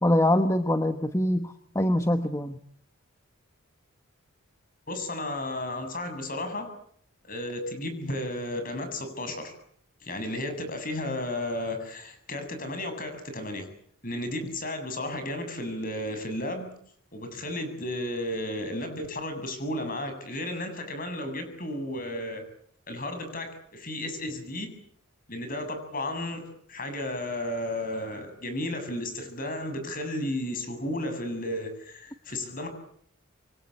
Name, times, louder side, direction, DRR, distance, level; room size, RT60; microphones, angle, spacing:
voice 1, 0.0-2.6, left 1 dB, 15° left, 8 dB, 1.2 m, -24 dB
voice 2, 4.9-6.7 7.2-9.5 10.0-13.7 14.0-16.7 17.1-22.4 22.9-24.7 25.3-32.7, left 1 dB, 40° left, 8 dB, 7.6 m, -33 dB
28.0 x 24.0 x 8.6 m, 0.64 s
head